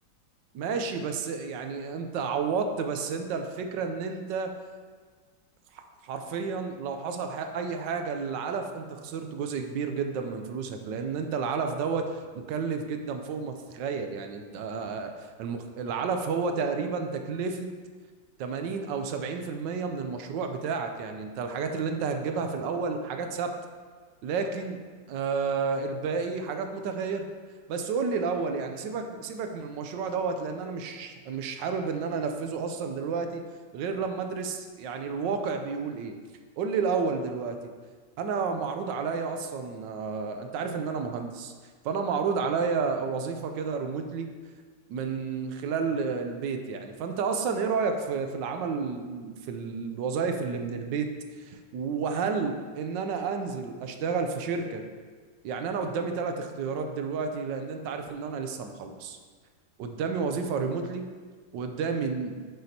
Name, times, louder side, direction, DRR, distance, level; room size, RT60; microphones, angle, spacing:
voice 1, 0.5-4.6 5.7-17.7 18.4-23.5 24.2-24.8 25.1-27.3 27.7-33.4 33.7-36.2 36.6-37.6 38.2-41.5 41.8-44.3 44.9-51.1 51.5-54.8 55.4-59.2 59.8-61.1 61.5-62.4, right 5 dB, 75° right, 6 dB, 1.2 m, -31 dB
7.6 x 7.0 x 2.8 m, 1.5 s
omnidirectional pair, 2.1 m